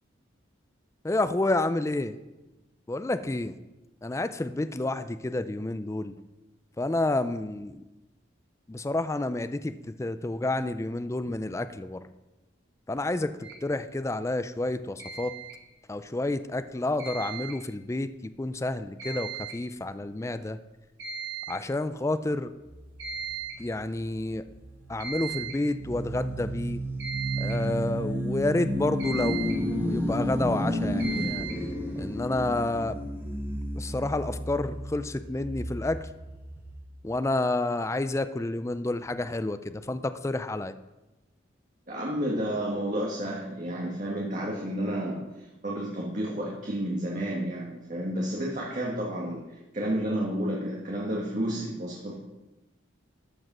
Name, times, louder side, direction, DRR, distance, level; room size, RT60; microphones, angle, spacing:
voice 1, 1.0-2.2 2.9-3.6 4.0-6.1 6.8-7.8 8.7-12.0 12.9-15.3 15.9-20.6 21.5-22.5 23.6-24.4 24.9-26.8 27.4-31.4 32.0-33.0 33.7-36.1 37.0-40.7, left 2 dB, 15° left, 11 dB, 0.4 m, -29 dB
sound 1, 13.4-13.6 15.0-15.6 17.0-17.6 19.0-19.6 19.9-20.0 20.6-20.7 21.0-21.6 23.0-23.6 25.0-25.7 27.0-27.7 29.0-29.7 31.0-31.7, right 7 dB, 65° right, 3.6 m, -37 dB
sound 2, 22.7-36.8, equal, 10° right, 1.4 m, -32 dB
voice 2, 41.9-52.1, right 1 dB, 40° right, -3 dB, 1.6 m, -31 dB
13.5 x 5.2 x 6.1 m, 1.1 s
head